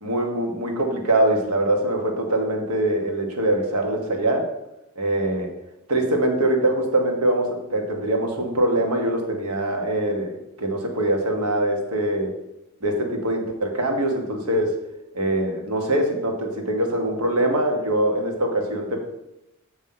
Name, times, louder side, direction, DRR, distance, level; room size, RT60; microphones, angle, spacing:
voice 1, 0.0-4.5 5.0-5.5 5.9-10.3 10.6-12.3 12.8-14.8 15.1-19.0, right 1 dB, 80° right, 2 dB, 1.3 m, -23 dB
7.6 x 3.1 x 5.6 m, 0.88 s
head